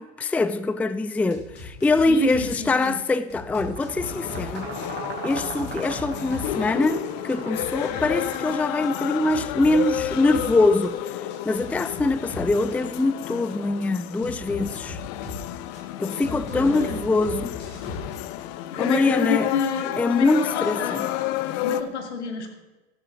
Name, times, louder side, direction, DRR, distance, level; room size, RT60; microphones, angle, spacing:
voice 1, 0.0-4.7 5.2-15.0 16.0-17.6 18.8-19.5 20.0-21.1, left 2 dB, 5° left, 0.4 m, -23 dB
sound 1, 1.3-2.5 2.8-6.5 6.8-10.5 10.8-12.6 14.2-15.8 16.2-18.2, left 2 dB, 30° left, 5.1 m, -39 dB
voice 2, 2.1-3.0 16.3-17.0 18.7-21.0 21.6-22.5, left 6 dB, 80° left, 2.3 m, -29 dB
sound 2, 3.6-9.3, right 4 dB, 30° right, 4.6 m, -38 dB
sound 3, 4.0-21.8, left 13 dB, 55° left, 0.9 m, -31 dB
13.5 x 12.5 x 3.8 m
hypercardioid pair, 85°, 33 cm